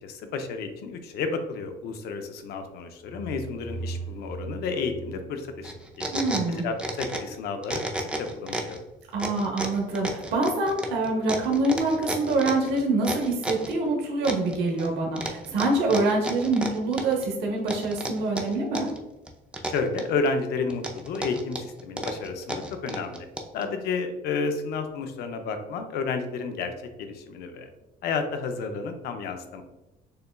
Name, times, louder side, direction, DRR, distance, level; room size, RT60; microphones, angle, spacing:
voice 1, 0.0-6.1 6.6-8.8 19.7-23.3 23.5-26.7 27.0-27.7 28.0-29.6, left 4 dB, 70° left, 6 dB, 0.6 m, -31 dB
sound 1, 2.7-6.3, right 3 dB, 55° left, 1.1 m, -39 dB
sound 2, 5.6-7.4 7.6-8.8 9.2-13.7 14.2-14.9 15.2-17.3 17.7-19.0 19.3-20.3 20.7-23.6, right 1 dB, 5° right, 0.4 m, -32 dB
voice 2, 6.1-6.6 9.1-18.9, right 2 dB, 80° right, -1 dB, 0.9 m, -25 dB
6.6 x 2.2 x 2.3 m, 0.99 s
cardioid pair, 110°, 17 cm